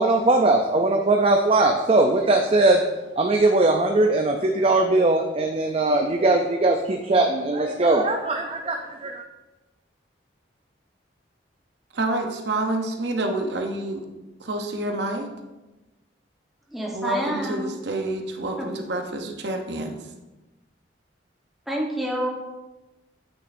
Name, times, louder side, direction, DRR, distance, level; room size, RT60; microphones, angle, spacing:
voice 1, 0.0-2.8 3.2-9.2, right 2 dB, 30° right, 3 dB, 0.4 m, -20 dB
voice 2, 11.9-14.1 14.4-15.3 16.9-20.0, right 2 dB, 65° right, 4 dB, 0.8 m, -28 dB
voice 3, 16.7-17.7 18.6-18.7 21.7-22.3, equal, ahead, -2 dB, 1.0 m, -28 dB
8.3 x 6.4 x 2.6 m, 1.1 s
head